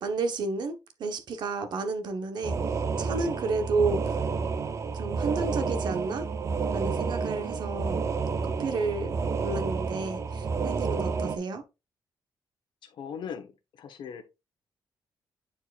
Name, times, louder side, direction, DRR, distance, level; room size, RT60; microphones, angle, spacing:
voice 1, 0.0-4.2 4.9-6.3 6.7-8.0 8.4-9.1 9.4-11.6, right 3 dB, 70° right, 1.1 m, -31 dB
sound 1, 2.4-11.4, right 5 dB, 40° right, 0.6 m, -30 dB
voice 2, 12.8-13.5 13.8-14.2, left 7 dB, 80° left, 1.2 m, -39 dB
8.8 x 4.7 x 2.5 m
wide cardioid pair, 150°, 8 cm